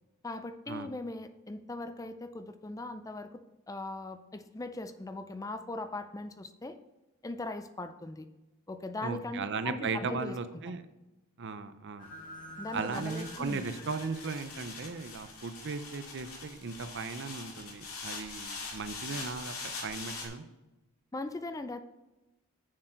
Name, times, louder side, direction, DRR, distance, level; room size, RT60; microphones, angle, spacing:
voice 1, 0.2-6.8 7.2-8.3 8.7-10.4 10.7-10.8 12.6-13.7 21.1-21.8, left 2 dB, 15° left, 9 dB, 0.4 m, -39 dB
voice 2, 9.0-10.8 11.4-12.1 12.7-19.5 19.8-20.4, right 4 dB, 55° right, 11 dB, 0.6 m, -37 dB
sound 1, 12.0-16.0, equal, 40° left, 1.8 m, -50 dB
sound 2, 12.9-20.3, left 4 dB, 80° left, 2.4 m, -43 dB
7.5 x 6.7 x 4.5 m, 1.0 s
head